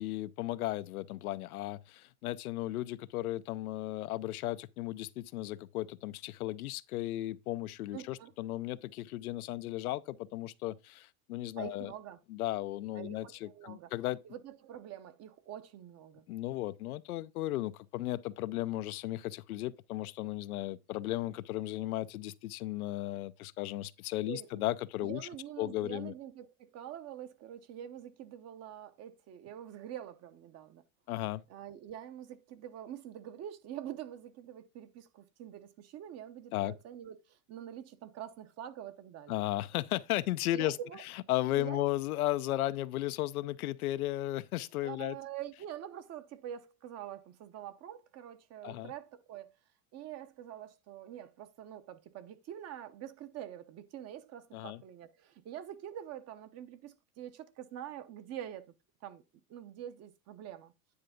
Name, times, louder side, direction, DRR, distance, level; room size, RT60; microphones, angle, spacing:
voice 1, 0.0-11.9 12.3-14.2 16.3-25.3 25.6-26.1 31.1-31.4 36.5-36.7 39.3-40.8 41.1-45.2 48.6-48.9 54.5-54.8, left 15 dB, 90° left, 0.6 m, -35 dB
voice 2, 7.9-8.3 11.6-12.2 12.9-13.9 14.2-16.3 24.3-24.6 25.0-30.8 31.5-39.4 40.5-41.0 41.5-41.9 44.8-49.5 49.9-58.7 59.0-59.2 59.5-60.7, right 10 dB, 35° right, 0.9 m, -45 dB
9.7 x 3.3 x 5.1 m
supercardioid pair, 125°, 43 cm